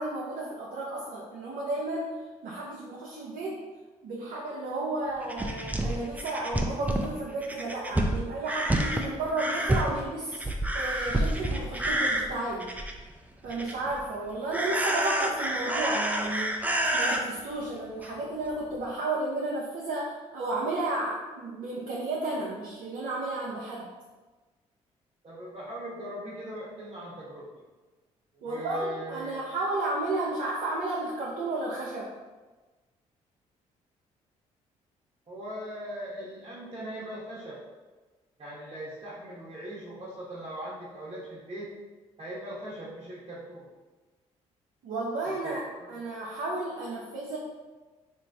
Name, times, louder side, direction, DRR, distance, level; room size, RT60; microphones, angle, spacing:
voice 1, 0.0-2.1 2.4-3.6 4.0-12.7 13.4-16.6 16.9-23.8 28.4-32.1 44.8-45.6 45.9-47.4, right 2 dB, 70° right, -5 dB, 0.6 m, -33 dB
sound 1, 5.2-13.1 13.4-14.0 14.5-17.2 18.0-18.1 18.5-18.6, right 1 dB, 10° right, 0.4 m, -29 dB
voice 2, 25.2-27.5 28.3-29.4 35.3-37.6 38.4-41.7 42.2-43.7 45.2-45.9, equal, 40° right, -8 dB, 1.1 m, -39 dB
3.0 x 2.5 x 3.4 m, 1.2 s
supercardioid pair, 55°, 15 cm